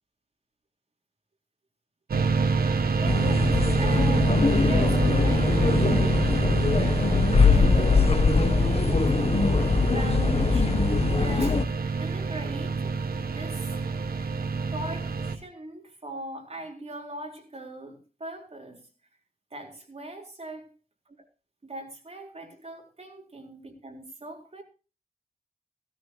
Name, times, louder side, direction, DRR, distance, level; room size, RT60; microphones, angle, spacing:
sound 1, 2.1-15.4, right 4 dB, 90° right, 1.1 m, -27 dB
sound 2, 3.0-11.6, left 4 dB, 40° left, 0.9 m, -22 dB
voice 1, 3.0-6.5 7.4-8.0 8.3-13.8 14.7-18.9 19.5-20.7 21.2-21.3 21.6-24.6, right 1 dB, 45° right, 1 dB, 3.9 m, -40 dB
17.0 x 13.0 x 3.0 m, 0.33 s
wide cardioid pair, 70°, 15 cm